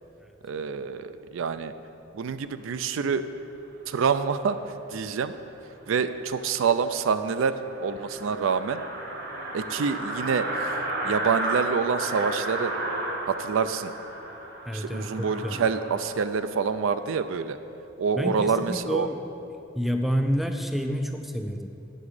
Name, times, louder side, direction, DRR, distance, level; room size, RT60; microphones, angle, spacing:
voice 1, 0.4-1.7 2.2-3.2 3.9-4.6 4.9-5.3 5.9-7.6 7.8-8.8 9.5-10.5 11.0-12.7 13.3-13.9 14.7-17.6 18.0-19.1, right 6 dB, 75° right, 11 dB, 0.4 m, -26 dB
sound 1, 6.3-6.4 6.8-6.9 7.2-7.3 7.5-16.3, right 2 dB, 50° right, 1.0 m, -33 dB
voice 2, 14.7-15.7 18.2-19.2 19.8-21.7, equal, ahead, 5 dB, 0.3 m, -29 dB
8.8 x 7.1 x 4.9 m, 2.9 s
head